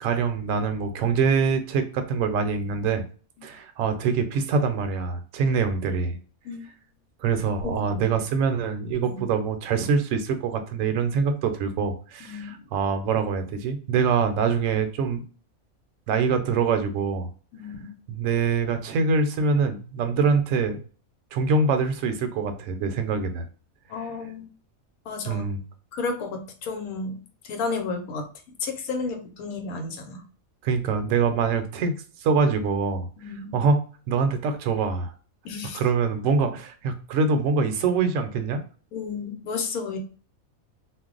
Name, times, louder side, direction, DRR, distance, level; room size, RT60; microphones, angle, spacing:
voice 1, 0.0-3.0 3.4-6.2 7.2-15.2 16.1-17.3 18.1-20.8 21.3-23.5 25.3-25.6 30.6-32.0 32.2-33.1 33.5-35.1 35.7-38.6, right 5 dB, 70° right, 7 dB, 0.9 m, -24 dB
voice 2, 7.6-8.0 9.0-9.2 12.2-12.5 17.5-17.9 23.9-24.4 25.1-25.4 25.9-27.2 27.4-28.3 28.6-30.2 33.2-33.5 35.4-35.8 38.9-40.0, left 4 dB, 85° left, 5 dB, 1.1 m, -32 dB
2.5 x 2.1 x 3.7 m, 0.39 s
omnidirectional pair, 1.5 m